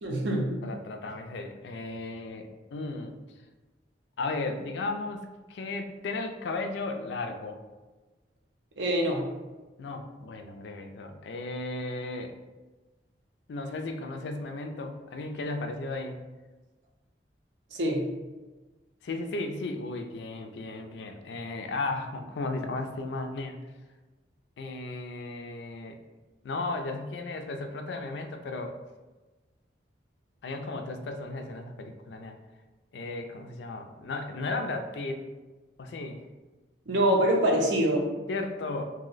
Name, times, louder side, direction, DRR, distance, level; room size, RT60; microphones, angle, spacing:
voice 1, 0.0-0.5 8.8-9.3 17.7-18.1 36.9-38.1, right 1 dB, 80° right, 0 dB, 0.6 m, -25 dB
voice 2, 0.6-3.1 4.2-7.6 9.8-12.4 13.5-16.2 19.0-23.6 24.6-26.0 26.4-28.8 30.4-32.4 32.9-35.2 35.8-36.2 38.3-38.9, left 2 dB, 75° left, 5 dB, 0.3 m, -35 dB
2.7 x 2.1 x 3.8 m, 1.2 s
head